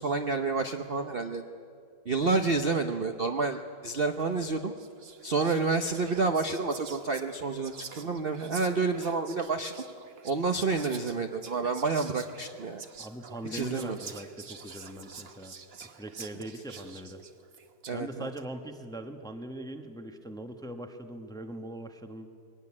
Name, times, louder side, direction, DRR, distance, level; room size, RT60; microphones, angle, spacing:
voice 1, 0.0-1.4 2.0-4.7 5.2-9.7 10.2-12.8 13.5-14.0 17.9-18.3, right 4 dB, 60° right, 6 dB, 0.5 m, -29 dB
Whispering, 4.2-4.4 4.8-18.0, right 6 dB, 40° right, 0.9 m, -47 dB
voice 2, 13.0-15.6 15.8-17.2 17.9-22.3, right 1 dB, 5° left, 6 dB, 0.7 m, -41 dB
22.0 x 18.0 x 9.8 m, 2.4 s
omnidirectional pair, 2.3 m